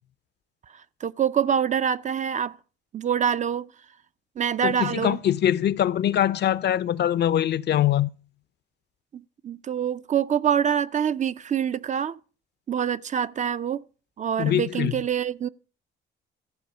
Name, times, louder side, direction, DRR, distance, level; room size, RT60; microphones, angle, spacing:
voice 1, 1.0-2.6 2.9-3.7 4.4-5.2 9.1-12.2 12.7-13.8 14.2-15.5, right 8 dB, 40° right, 0.4 m, -25 dB
voice 2, 4.6-8.1 14.4-14.9, left 11 dB, 60° left, 0.5 m, -23 dB
13.0 x 4.7 x 6.7 m
cardioid pair, 90°, 20 cm